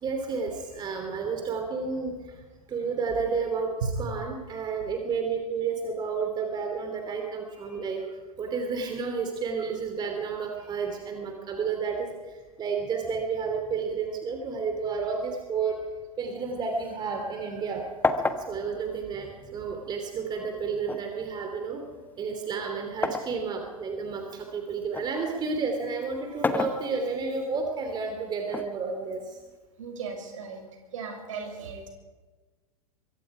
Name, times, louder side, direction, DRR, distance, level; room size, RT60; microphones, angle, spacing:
voice 1, 0.0-2.1 2.7-8.1 8.4-12.1 12.6-15.8 16.2-17.9 18.5-21.8 22.2-29.3, right 5 dB, 25° right, 4 dB, 2.9 m, -31 dB
sound 1, 16.4-17.7 18.0-20.0 20.9-23.4 23.9-25.2 26.2-27.4 28.5-29.5, left 3 dB, 10° left, 1.3 m, -31 dB
voice 2, 29.8-30.6 30.9-31.9, right 5 dB, 60° right, 3 dB, 6.3 m, -37 dB
24.5 x 23.5 x 4.9 m, 1.3 s
figure-of-eight pair, 95°, 19 cm